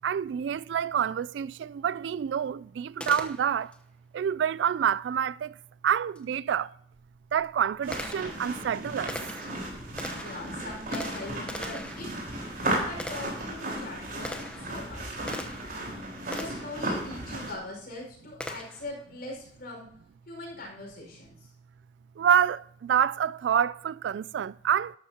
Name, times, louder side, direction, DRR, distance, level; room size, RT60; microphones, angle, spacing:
voice 1, 0.0-3.7 4.1-5.5 5.8-6.7 7.3-9.1 22.2-24.9, right 8 dB, 90° right, 0.3 m, -27 dB
Gunshot gunfire, 3.0-3.8 6.1-6.2 7.0-15.8 16.3-16.8 18.4-18.9, left 1 dB, 5° left, 0.9 m, -41 dB
sound 1, 7.8-17.5, right 1 dB, 55° right, 4.2 m, -35 dB
voice 2, 10.2-12.1 12.8-15.0 16.2-19.9 20.3-21.5, left 2 dB, 60° left, 5.2 m, -41 dB
12.5 x 12.0 x 2.9 m
head